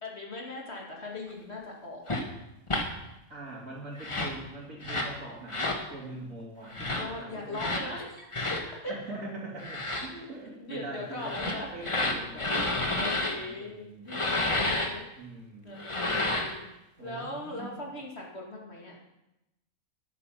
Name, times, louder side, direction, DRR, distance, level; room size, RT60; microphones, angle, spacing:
voice 1, 0.0-2.2 6.9-8.1 8.5-9.2 10.1-10.3 10.6-11.7 12.9-15.1 15.6-16.0 16.3-16.7 17.0-19.0, left 2 dB, 45° left, -2 dB, 2.6 m, -39 dB
sound 1, 2.1-2.2 2.7-2.9 4.0-4.4 4.8-5.1 5.5-5.8 6.7-7.0 7.5-7.8 8.3-8.6 9.6-10.1 11.2-13.4 14.1-14.9 15.8-16.6, left 2 dB, 20° left, 1.3 m, -30 dB
voice 2, 3.3-8.0 8.9-14.9 15.2-16.2 17.0-17.8, right 2 dB, 65° right, -6 dB, 3.0 m, -43 dB
13.5 x 9.7 x 5.8 m, 0.92 s
omnidirectional pair, 1.5 m